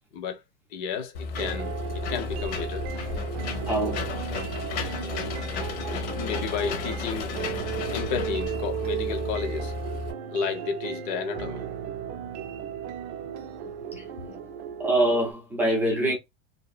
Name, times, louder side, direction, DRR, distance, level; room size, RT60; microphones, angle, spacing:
voice 1, 0.7-2.9 6.2-7.3 7.9-9.7 10.3-11.6 13.6-14.6, left 6 dB, 40° left, 0.7 m, -32 dB
Engine / Mechanisms, 1.1-10.1, left 4 dB, 60° left, 1.1 m, -33 dB
sound 1, 1.4-15.3, right 9 dB, 55° right, 0.5 m, -36 dB
voice 2, 3.7-4.1 14.0-14.1 14.8-16.2, right 1 dB, 5° right, 0.4 m, -24 dB
2.7 x 2.5 x 2.4 m
supercardioid pair, 160°, 39 cm